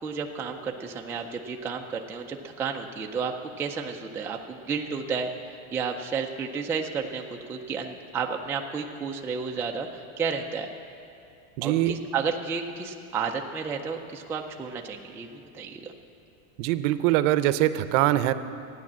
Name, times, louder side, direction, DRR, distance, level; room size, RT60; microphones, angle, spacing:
voice 1, 0.0-10.7 11.6-15.9, right 5 dB, 5° right, 1 dB, 0.3 m, -32 dB
voice 2, 11.6-11.9 16.6-18.3, right 14 dB, 65° right, 13 dB, 0.7 m, -23 dB
13.0 x 9.5 x 7.3 m, 2.6 s
supercardioid pair, 140°, 41 cm